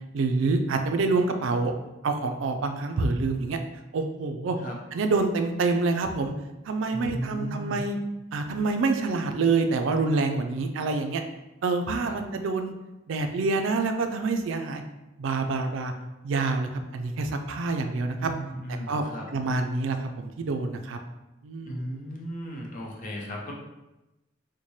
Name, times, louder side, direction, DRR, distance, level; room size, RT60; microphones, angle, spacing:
voice 1, 0.1-1.7 2.0-3.6 3.9-4.6 4.9-6.3 6.7-8.0 8.3-11.2 11.6-12.7 13.1-14.8 15.2-15.9 16.2-18.3 18.9-19.0 19.3-21.0 21.4-21.8, right 3 dB, 70° right, 6 dB, 0.4 m, -26 dB
voice 2, 6.9-7.8 12.0-12.2 18.1-19.3 21.7-23.5, equal, 40° left, -2 dB, 0.7 m, -36 dB
4.1 x 2.1 x 3.1 m, 0.99 s
head